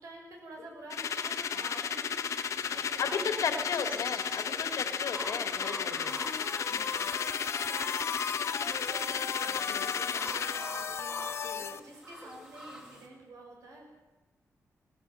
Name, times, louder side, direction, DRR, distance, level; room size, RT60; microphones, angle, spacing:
voice 1, 0.0-4.3 6.6-13.9, right 2 dB, 75° right, 1 dB, 6.8 m, -49 dB
sound 1, 0.9-10.6, left 7 dB, 65° left, 1.2 m, -34 dB
sound 2, 2.3-13.1, equal, 15° right, 3.3 m, -47 dB
voice 2, 2.7-6.1 9.7-10.0 11.4-11.7, left 6 dB, 85° left, 7 dB, 2.7 m, -35 dB
sound 3, 6.1-11.8, left 7 dB, 50° left, 0.7 m, -37 dB
19.5 x 19.5 x 7.9 m, 1.1 s
wide cardioid pair, 145°, 6 cm